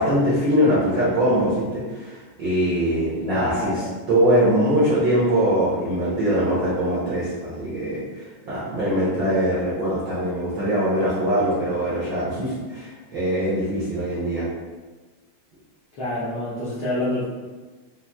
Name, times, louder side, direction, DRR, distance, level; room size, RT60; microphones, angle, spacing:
voice 1, 0.0-14.5, equal, 70° right, -9 dB, 1.1 m, -22 dB
voice 2, 3.2-3.8 16.0-17.2, left 1 dB, 70° left, -11 dB, 1.3 m, -27 dB
5.7 x 2.5 x 2.3 m, 1.3 s
omnidirectional pair, 3.4 m